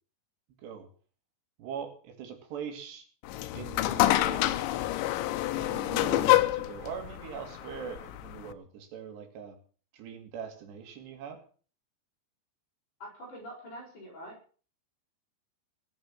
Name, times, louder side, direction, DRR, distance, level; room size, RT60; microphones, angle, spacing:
voice 1, 1.6-3.0 3.5-4.6 5.5-9.6 9.9-11.4, right 7 dB, 75° right, 6 dB, 4.7 m, -41 dB
elevator door city Moscow, 3.3-8.5, left 15 dB, 90° left, 3.2 m, -27 dB
sound 1, 3.8-8.2, right 4 dB, 35° right, 3.8 m, -55 dB
voice 2, 13.0-14.3, equal, 45° left, -2 dB, 8.7 m, -44 dB
19.0 x 7.9 x 7.5 m, 0.41 s
omnidirectional pair, 5.0 m